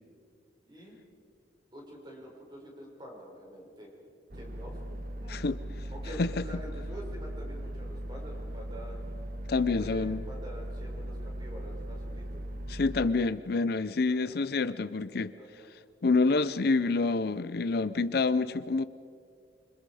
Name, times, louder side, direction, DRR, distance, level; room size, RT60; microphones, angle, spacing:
voice 1, 1.7-3.9 4.3-4.8 5.2-5.4 5.9-9.0 9.7-12.4 14.1-14.4 14.8-15.7, equal, 25° right, -2 dB, 5.7 m, -46 dB
sound 1, 4.3-13.1, right 1 dB, 50° right, 1.1 m, -38 dB
voice 2, 9.5-10.2 12.7-15.3 16.0-18.8, left 3 dB, 55° left, 14 dB, 0.5 m, -27 dB
27.0 x 25.5 x 4.9 m, 2.4 s
head